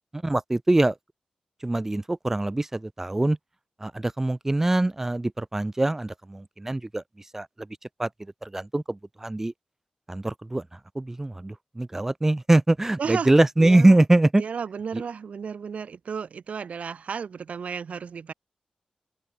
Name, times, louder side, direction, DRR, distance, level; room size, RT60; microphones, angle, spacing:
voice 1, 0.1-0.9 1.6-3.4 3.8-7.0 7.3-7.7 8.0-8.1 8.4-9.5 10.1-10.6 10.9-14.4 14.9-15.0, right 2 dB, 15° right, 0.6 m, -23 dB
voice 2, 13.0-13.3 13.6-13.9 14.4-18.3, right 6 dB, 75° right, 1.6 m, -33 dB
open air
wide cardioid pair, 130°, 2 cm